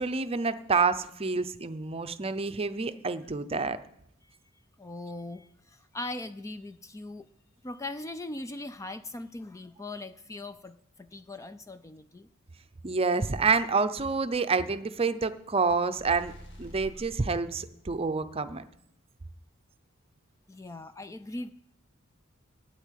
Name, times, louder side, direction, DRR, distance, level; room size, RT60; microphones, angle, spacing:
voice 1, 0.0-3.8 12.8-16.3 16.6-18.6, right 4 dB, 30° right, 10 dB, 0.6 m, -28 dB
voice 2, 4.8-7.3 7.6-12.3 20.5-21.5, left 2 dB, 15° left, 11 dB, 0.3 m, -40 dB
sound 1, 16.0-17.2, equal, 60° left, 1.7 m, -46 dB
9.0 x 8.3 x 9.2 m, 0.75 s
head